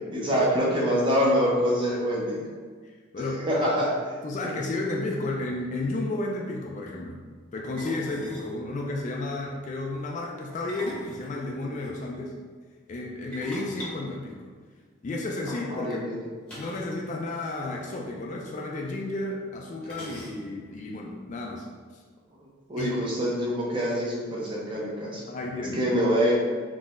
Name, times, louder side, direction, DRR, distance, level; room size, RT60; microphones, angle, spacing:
voice 1, 0.1-2.5 3.3-3.9 15.7-16.2 22.7-25.2 25.7-26.3, equal, 25° right, -4 dB, 0.6 m, -25 dB
voice 2, 4.2-7.2 7.5-12.3 12.9-14.5 15.0-16.0 16.6-21.7 22.8-22.9 25.3-25.8, left 2 dB, 35° left, 0 dB, 0.3 m, -32 dB
sound 1, 5.7-6.0 7.8-8.6 10.5-11.9 13.3-15.0 16.5-17.0 17.2-17.3 17.6-17.8 18.8-18.9 19.8-20.7, equal, 5° left, 0.8 m, -42 dB
3.8 x 2.8 x 2.5 m, 1.5 s
head